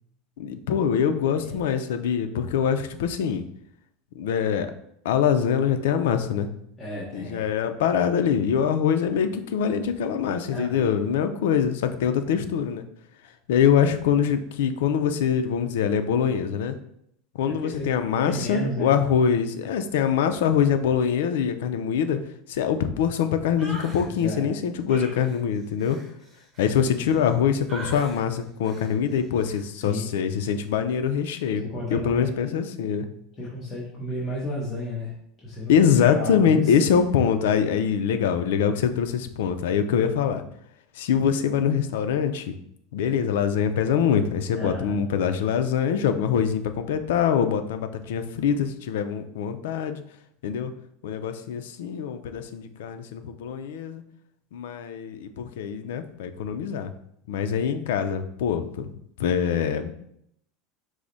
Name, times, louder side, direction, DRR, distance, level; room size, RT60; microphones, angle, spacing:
voice 1, 0.4-3.5 4.2-4.7 5.0-6.5 7.1-12.8 13.5-16.8 17.3-22.2 22.5-26.0 26.6-31.6 31.9-33.1 35.7-40.4 41.0-42.5 42.9-50.0 50.4-50.7 51.0-54.0 54.5-56.9 57.3-58.9 59.2-59.9, left 7 dB, 90° left, 8 dB, 0.4 m, -24 dB
voice 2, 6.8-7.5 10.4-11.0 17.6-17.9 18.1-18.9 24.1-24.5 29.8-30.1 31.6-32.7 33.4-35.1 35.4-36.7 44.5-45.0, equal, 20° left, -7 dB, 0.9 m, -33 dB
sound 1, 23.6-24.1 24.9-27.3 27.7-28.2 28.6-29.0 29.4-29.6, right 2 dB, 20° right, 0.9 m, -41 dB
4.7 x 2.1 x 3.9 m, 0.71 s
supercardioid pair, 170°, 0 cm